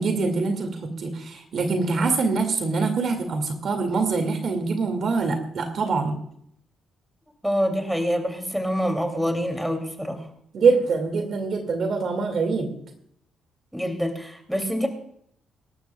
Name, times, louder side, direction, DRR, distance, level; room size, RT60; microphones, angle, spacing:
voice 1, 0.0-6.2 10.5-12.7, right 4 dB, 55° right, 5 dB, 2.3 m, -24 dB
voice 2, 7.4-10.2 13.7-14.9, equal, ahead, 5 dB, 2.7 m, -26 dB
24.5 x 12.0 x 2.3 m, 0.71 s
cardioid pair, 90°, 0 cm